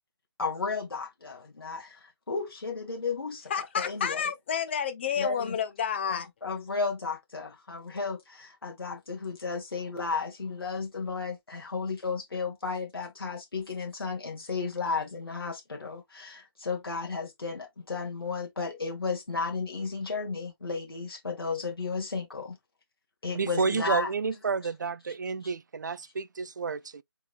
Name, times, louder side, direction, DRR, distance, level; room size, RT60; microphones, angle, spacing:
voice 1, 0.4-4.2 5.2-5.6 6.1-22.6 23.2-24.1 25.4-25.5, left 4 dB, 65° left, 1.6 m, -34 dB
voice 2, 3.5-6.3, left 7 dB, 25° left, 0.7 m, -30 dB
voice 3, 23.3-27.0, right 5 dB, 45° right, 0.4 m, -30 dB
4.7 x 4.2 x 2.5 m
figure-of-eight pair, 150°, 13 cm